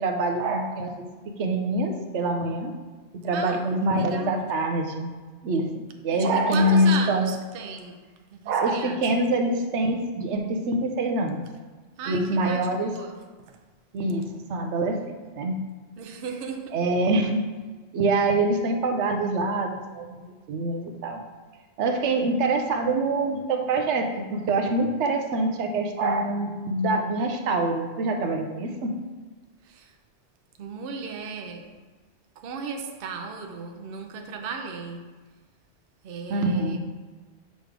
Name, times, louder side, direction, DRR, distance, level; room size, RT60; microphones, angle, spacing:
voice 1, 0.0-2.7 3.2-5.1 5.4-7.3 8.5-11.4 12.1-12.9 13.9-15.6 16.7-17.4 17.9-20.2 20.5-21.2 21.8-28.9 36.3-36.8, right 2 dB, 85° right, 4 dB, 1.0 m, -25 dB
voice 2, 3.3-3.6 3.9-4.4 6.1-8.0 8.3-9.0 12.0-13.2 13.5-13.6 16.0-16.8 29.6-29.9 30.6-31.7 32.4-35.0 36.0-36.8, right 5 dB, 60° right, 4 dB, 0.8 m, -36 dB
6.7 x 3.1 x 4.9 m, 1.3 s
omnidirectional pair, 1.2 m